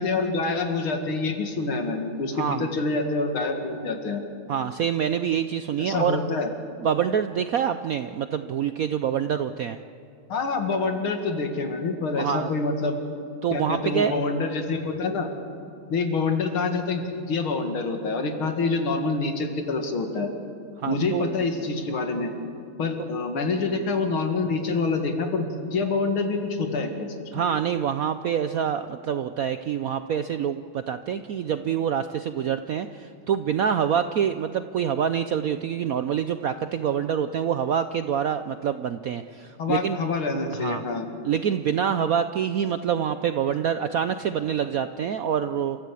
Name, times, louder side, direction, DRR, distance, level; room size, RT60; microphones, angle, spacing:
voice 1, 0.0-4.2 5.8-6.5 10.3-13.0 13.5-15.3 15.9-20.3 20.9-22.3 22.8-27.2 39.6-41.1, left 3 dB, 90° left, 5 dB, 2.9 m, -26 dB
voice 2, 2.3-2.7 4.5-6.2 6.8-9.8 12.1-12.5 13.4-14.2 20.8-21.3 27.3-40.0 40.5-40.8 41.2-45.8, right 8 dB, 75° right, 10 dB, 0.8 m, -26 dB
29.5 x 14.5 x 8.4 m, 2.6 s
omnidirectional pair, 2.2 m